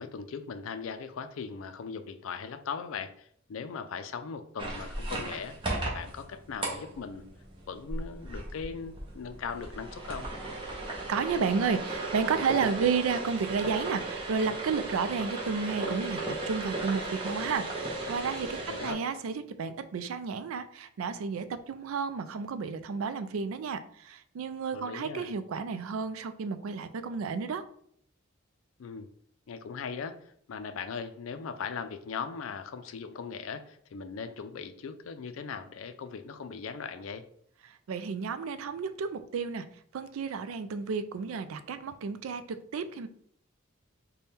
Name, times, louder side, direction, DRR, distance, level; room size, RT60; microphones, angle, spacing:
voice 1, 0.0-5.5 5.8-7.3 7.7-10.3 18.7-19.0 24.7-25.3 28.8-29.1 29.5-37.2, left 5 dB, 70° left, 9 dB, 0.4 m, -39 dB
sound 1, 4.6-18.9, right 2 dB, 25° right, 0.7 m, -36 dB
voice 2, 10.9-27.6 37.9-39.7 39.9-43.1, right 5 dB, 80° right, 11 dB, 0.4 m, -32 dB
3.5 x 2.2 x 4.1 m, 0.64 s
head